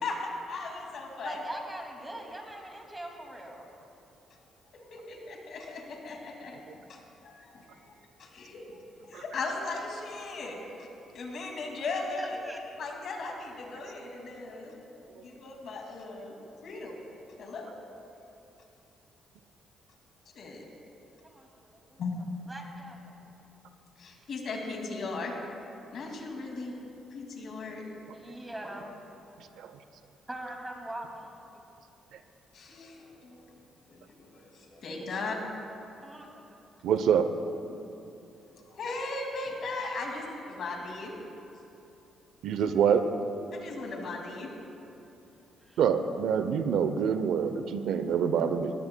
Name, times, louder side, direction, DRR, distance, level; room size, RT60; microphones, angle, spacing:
voice 1, 0.0-1.4 4.7-6.6 6.9-10.9 11.1-12.3 12.8-14.7 15.2-16.3 16.6-17.0 17.4-17.7 20.3-20.7 22.0-22.1 24.0-25.3 25.9-26.8 27.1-27.8 32.5-33.6 33.9-35.4 38.7-41.1 43.5-44.5 48.2-48.3, left 3 dB, 65° left, 1 dB, 2.2 m, -38 dB
voice 2, 1.2-3.7 12.2-12.6 21.2-21.5 22.5-23.1 28.1-28.9 30.3-31.3 35.1-35.3 36.0-36.6 45.6-45.8, right 1 dB, 15° right, 1 dB, 2.3 m, -41 dB
voice 3, 36.8-37.3 42.4-43.0 45.8-48.7, right 7 dB, 80° right, 10 dB, 0.6 m, -26 dB
19.0 x 16.0 x 2.2 m, 2.8 s
cardioid pair, 90°, 0 cm